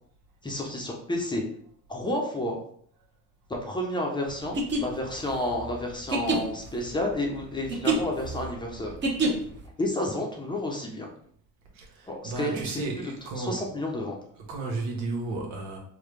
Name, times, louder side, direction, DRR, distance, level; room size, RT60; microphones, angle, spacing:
voice 1, 0.4-1.4 1.9-2.6 3.6-8.9 9.8-11.1 12.1-12.8 13.4-14.2, left 1 dB, 15° left, 0 dB, 0.6 m, -30 dB
sound 1, 4.4-9.7, right 2 dB, 30° right, 0.9 m, -28 dB
voice 2, 11.7-13.7 14.4-15.8, right 3 dB, 80° right, 0 dB, 1.2 m, -33 dB
3.8 x 2.2 x 3.3 m, 0.62 s
cardioid pair, 120°, 35 cm